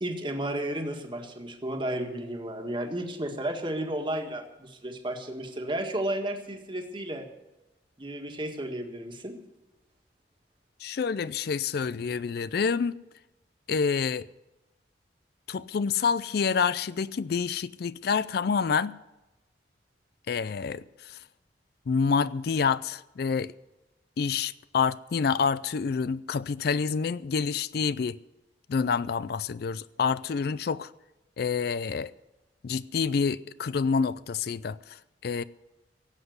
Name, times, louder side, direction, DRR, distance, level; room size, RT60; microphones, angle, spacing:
voice 1, 0.0-7.3 8.0-9.4, right 1 dB, 25° right, 1.7 m, -33 dB
voice 2, 10.8-13.0 13.7-14.3 15.5-18.9 20.3-21.2 21.9-23.5 24.2-28.2 28.7-30.9 31.4-32.1 32.6-35.4, left 5 dB, 60° left, 0.4 m, -28 dB
17.0 x 8.1 x 7.9 m
head